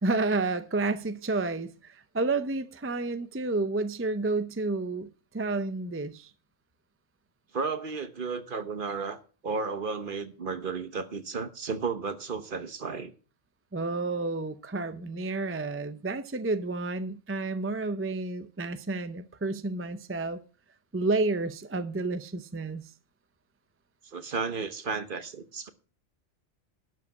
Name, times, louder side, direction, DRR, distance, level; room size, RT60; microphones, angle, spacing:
voice 1, 0.0-6.3 13.7-20.4 20.9-22.9, right 3 dB, 20° right, 0.4 m, -30 dB
voice 2, 7.5-13.1 24.0-25.7, right 5 dB, 45° right, 1.1 m, -33 dB
12.0 x 5.1 x 8.2 m
omnidirectional pair, 1.3 m